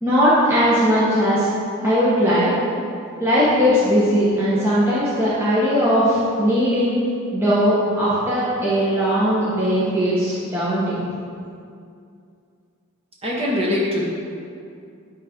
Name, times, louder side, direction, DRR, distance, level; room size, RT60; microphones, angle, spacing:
voice 1, 0.0-1.5 1.8-2.5 3.2-7.0 7.3-11.1, equal, 10° right, -11 dB, 1.2 m, -19 dB
voice 2, 13.2-14.1, left 1 dB, 30° right, -5 dB, 1.6 m, -22 dB
9.8 x 3.7 x 5.2 m, 2.4 s
head